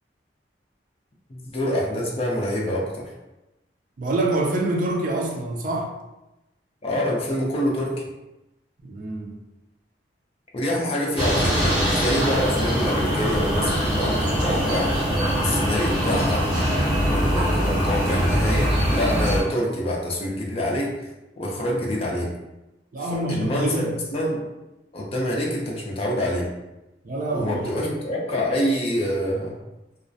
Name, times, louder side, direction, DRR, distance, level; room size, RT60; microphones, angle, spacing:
voice 1, 1.3-3.1 6.8-8.0 10.5-15.0 15.4-16.5 17.1-21.1 21.4-22.3 23.0-24.4 24.9-26.5 27.3-29.6, equal, 35° left, -2 dB, 0.5 m, -26 dB
voice 2, 4.0-5.9 8.8-9.4 22.9-23.9 27.0-27.6, right 2 dB, 50° right, 0 dB, 0.4 m, -26 dB
sound 1, 11.2-19.4, equal, 5° right, 0.9 m, -22 dB
2.3 x 2.0 x 2.6 m, 0.97 s
head